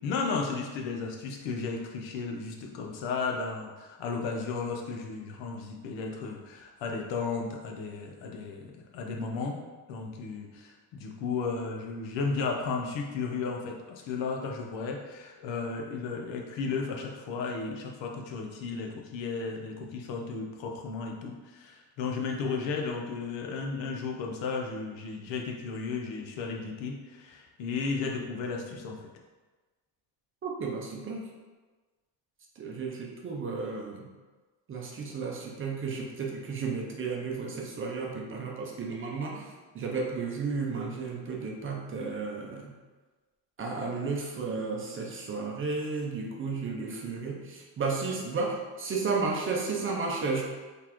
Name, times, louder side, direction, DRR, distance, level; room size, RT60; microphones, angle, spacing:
voice 1, 0.0-9.6 9.9-29.1, left 4 dB, 90° left, 1 dB, 0.8 m, -34 dB
voice 2, 30.4-31.3 32.6-34.1 34.7-39.5 39.7-42.7 43.6-50.4, right 4 dB, 30° right, -1 dB, 0.5 m, -33 dB
4.0 x 3.3 x 2.9 m, 1.3 s
cardioid pair, 165°, 43 cm